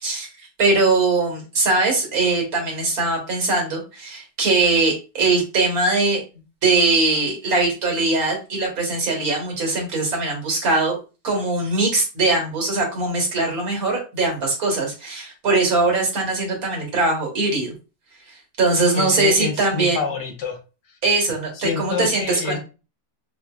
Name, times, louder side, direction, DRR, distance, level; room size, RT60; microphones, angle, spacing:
voice 1, 0.6-6.2 6.6-11.0 11.2-17.7 18.3-20.0 21.0-22.6, right 3 dB, 60° right, 0 dB, 1.6 m, -21 dB
voice 2, 18.9-20.6 21.5-22.6, left 4 dB, 75° left, 3 dB, 1.4 m, -27 dB
4.1 x 2.6 x 2.3 m, 0.31 s
omnidirectional pair, 1.9 m